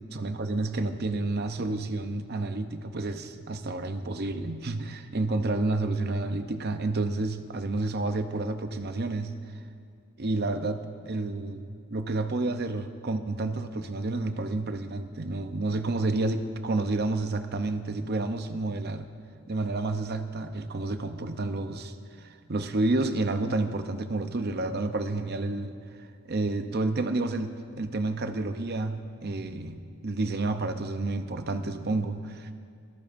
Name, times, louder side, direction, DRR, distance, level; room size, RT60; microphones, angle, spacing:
voice 1, 0.2-9.3 10.2-19.0 19.5-32.5, right 2 dB, 45° right, 8 dB, 0.7 m, -30 dB
24.5 x 14.0 x 2.6 m, 2.4 s
head